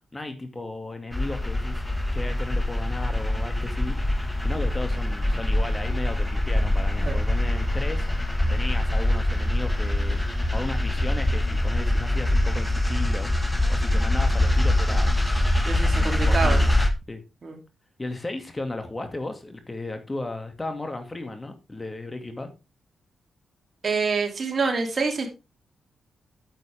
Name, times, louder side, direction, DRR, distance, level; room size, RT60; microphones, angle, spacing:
voice 1, 0.1-1.8 2.1-4.0 4.4-8.1 8.5-10.2 10.5-13.3 13.7-15.1 15.8-16.7 17.1-17.2 18.0-22.5, left 2 dB, 25° left, 7 dB, 2.3 m, -35 dB
sound 1, 1.1-16.9, left 1 dB, 10° left, 1.7 m, -24 dB
voice 2, 15.7-16.6 17.4-17.6 23.8-25.3, right 4 dB, 50° right, 3 dB, 3.0 m, -26 dB
8.9 x 8.1 x 3.5 m, 0.28 s
supercardioid pair, 50°, 0 cm